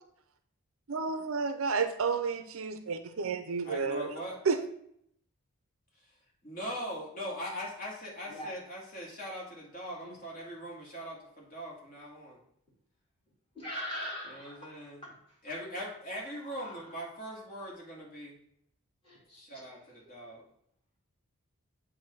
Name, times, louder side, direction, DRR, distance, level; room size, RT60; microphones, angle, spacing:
voice 1, 0.9-4.1 4.5-4.6, right 5 dB, 65° right, 9 dB, 0.5 m, -31 dB
voice 2, 3.6-4.4 6.4-12.4 14.3-15.0 15.4-18.4 19.3-20.4, equal, 40° left, -3 dB, 2.0 m, -41 dB
voice 3, 13.5-15.2 16.4-16.8 19.0-19.7, left 1 dB, 25° left, -6 dB, 2.5 m, -42 dB
7.6 x 2.6 x 5.7 m, 0.69 s
head